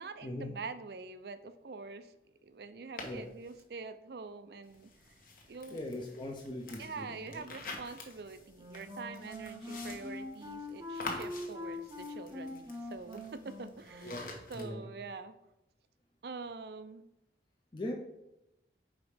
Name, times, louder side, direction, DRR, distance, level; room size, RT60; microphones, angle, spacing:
voice 1, 0.0-2.1 2.4-4.9 5.5-5.8 6.8-15.3 16.2-17.0, right 4 dB, 65° right, 11 dB, 0.4 m, -45 dB
sound 1, 3.0-3.6 4.6-14.7, left 2 dB, 50° left, 1.0 m, -48 dB
voice 2, 5.7-7.4 14.0-14.9 17.7-17.9, left 1 dB, 25° left, -1 dB, 0.6 m, -41 dB
Wind instrument woodwind instrument, 8.5-14.4, left 2 dB, 20° right, 0.8 m, -43 dB
5.0 x 4.1 x 4.9 m, 0.89 s
head